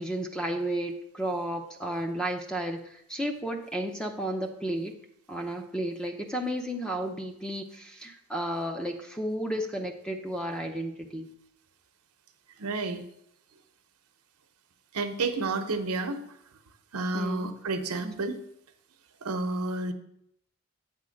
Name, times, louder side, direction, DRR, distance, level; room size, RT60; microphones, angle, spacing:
voice 1, 0.0-4.9 5.3-11.3 17.1-17.5, right 1 dB, 5° left, 4 dB, 0.6 m, -33 dB
voice 2, 12.6-13.0 14.9-16.2 16.9-18.4 19.2-19.9, right 3 dB, 90° right, 7 dB, 0.8 m, -30 dB
8.4 x 3.6 x 6.3 m, 0.74 s
head